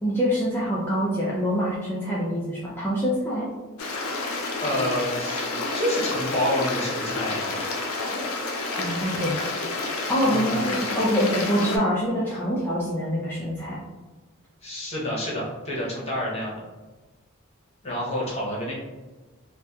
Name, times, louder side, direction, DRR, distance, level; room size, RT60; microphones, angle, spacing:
voice 1, 0.0-3.5 8.8-9.3 10.1-13.8, equal, 10° left, -7 dB, 0.3 m, -25 dB
Stream, 3.8-11.8, left 3 dB, 80° left, 0.4 m, -29 dB
voice 2, 4.6-5.4 5.7-7.7 10.2-10.6 14.6-16.6 17.8-18.7, left 1 dB, 30° left, -5 dB, 0.8 m, -28 dB
2.7 x 2.1 x 2.3 m, 1.2 s
head